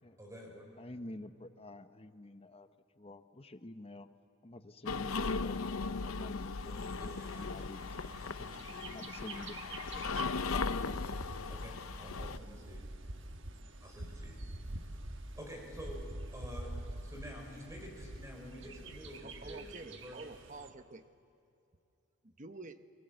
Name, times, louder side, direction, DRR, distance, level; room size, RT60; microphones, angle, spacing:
voice 1, 0.2-0.7 6.6-7.5 8.0-8.8 11.5-12.8 13.8-14.4 14.8-20.2, equal, 15° right, 1 dB, 5.3 m, -49 dB
voice 2, 0.8-2.7 3.0-4.1 4.4-6.8 7.2-8.3 8.8-10.0 10.4-11.1, left 1 dB, 25° left, 9 dB, 0.8 m, -49 dB
sound 1, 4.9-12.4, left 4 dB, 80° left, 0.7 m, -37 dB
Bird, 7.0-20.7, right 2 dB, 60° right, 1.3 m, -47 dB
voice 3, 19.2-21.1 22.2-22.8, right 3 dB, 35° right, 9 dB, 0.9 m, -48 dB
28.0 x 22.0 x 7.8 m, 2.8 s
head